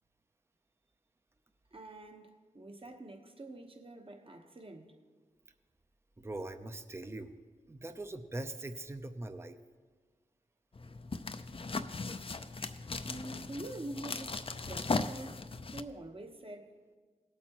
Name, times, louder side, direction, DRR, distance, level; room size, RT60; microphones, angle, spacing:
voice 1, 1.7-5.0 13.0-15.4 15.7-16.7, right 1 dB, 40° right, 1.2 m, -46 dB
voice 2, 6.2-7.3 7.7-9.6, right 2 dB, 20° right, 0.6 m, -41 dB
sound 1, 10.7-15.8, left 3 dB, 40° left, 0.5 m, -38 dB
17.5 x 8.4 x 3.0 m
cardioid pair, 50°, 14 cm